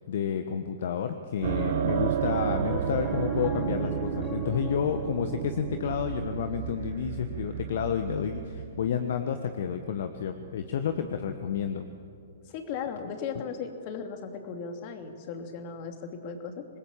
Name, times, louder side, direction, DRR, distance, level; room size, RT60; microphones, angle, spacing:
voice 1, 0.1-11.9, left 7 dB, 60° left, 8 dB, 1.2 m, -30 dB
sound 1, 1.4-9.8, right 12 dB, 50° right, 0.8 m, -32 dB
Piano, 1.5-12.0, left 8 dB, 20° left, 0.6 m, -44 dB
voice 2, 12.5-16.7, left 6 dB, 40° left, 5 dB, 2.9 m, -37 dB
26.0 x 20.5 x 7.4 m, 2.5 s
figure-of-eight pair, 115°, 0 cm